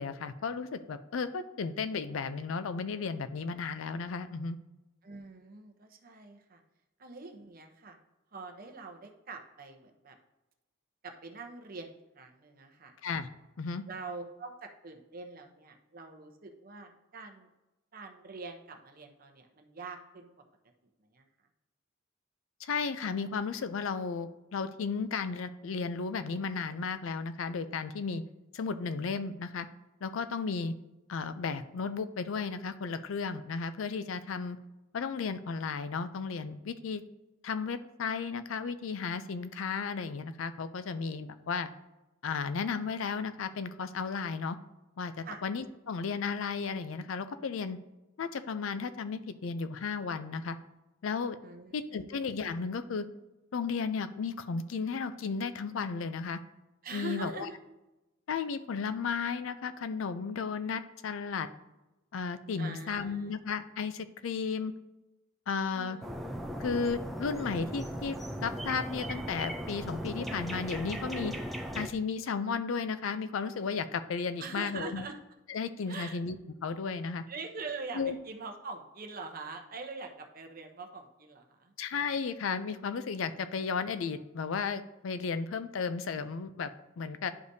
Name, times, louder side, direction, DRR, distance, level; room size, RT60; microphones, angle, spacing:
voice 1, 0.0-4.6 13.0-13.3 13.6-13.8 22.6-28.2 28.5-29.7 30.0-30.7 31.1-34.6 34.9-37.0 37.4-41.7 42.2-44.6 45.0-47.8 48.2-50.6 51.0-51.4 51.7-53.1 53.5-56.4 56.9-57.5 58.3-61.5 62.1-64.7 65.5-66.0 66.6-68.2 68.4-71.3 71.7-75.0 75.5-77.2 77.9-78.2 81.8-86.7 87.0-87.3, left 5 dB, 75° left, 12 dB, 0.4 m, -34 dB
voice 2, 5.0-6.6 7.0-8.0 8.3-10.2 11.0-12.9 13.9-17.5 17.9-20.3 21.1-21.2 45.2-45.4 51.4-51.7 56.8-57.6 62.6-63.3 65.7-66.0 74.4-75.1 75.9-76.2 77.3-81.7, right 4 dB, 45° right, 4 dB, 0.8 m, -44 dB
sound 1, 66.0-71.9, equal, ahead, 0.4 m, -38 dB
11.0 x 4.9 x 2.7 m, 1.0 s
head